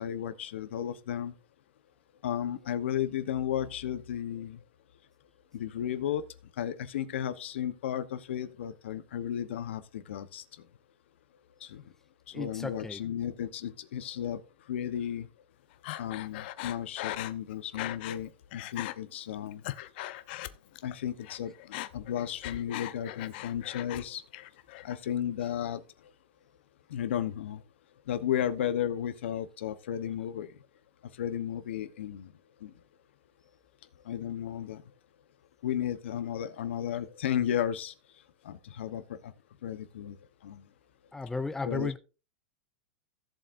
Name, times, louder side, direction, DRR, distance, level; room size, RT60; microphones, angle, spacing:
voice 1, 0.0-1.3 2.2-4.6 5.5-6.2 6.6-10.4 11.6-11.8 12.3-14.4 14.7-15.3 16.0-19.6 20.8-21.5 21.9-24.2 24.8-25.8 26.9-27.6 28.1-30.5 31.2-32.3 32.6-32.7 34.0-34.8 35.6-37.9 38.4-39.3 39.6-40.2 40.4-40.6 41.7-42.0, left 10 dB, 80° left, 1.0 m, -34 dB
voice 2, 12.3-13.0 41.1-42.0, left 3 dB, 5° left, 0.6 m, -34 dB
Breathing, 15.8-18.2 18.5-19.0 19.4-21.0 21.2-24.0 24.3-25.0, left 15 dB, 60° left, 0.7 m, -39 dB
16.5 x 7.6 x 2.6 m
supercardioid pair, 140°, 6 cm